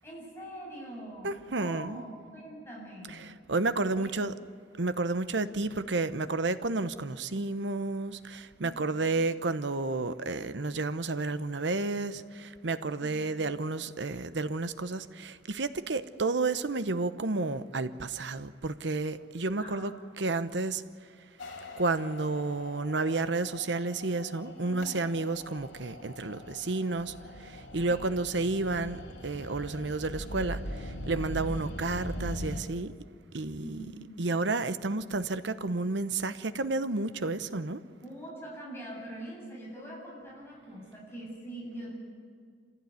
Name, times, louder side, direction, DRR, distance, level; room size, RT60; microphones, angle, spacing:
voice 1, 0.0-3.4 3.9-4.1 19.6-19.9 24.6-25.0 27.9-28.0 33.6-34.3 38.0-41.9, right 1 dB, 15° left, 7.8 m, -44 dB
voice 2, 1.2-2.1 3.1-4.4 4.7-20.8 21.8-32.9 33.3-33.8 34.2-37.8, right 3 dB, 75° right, 0.9 m, -31 dB
sound 1, 21.4-32.6, equal, 90° left, 2.7 m, -41 dB
26.0 x 16.0 x 9.6 m
head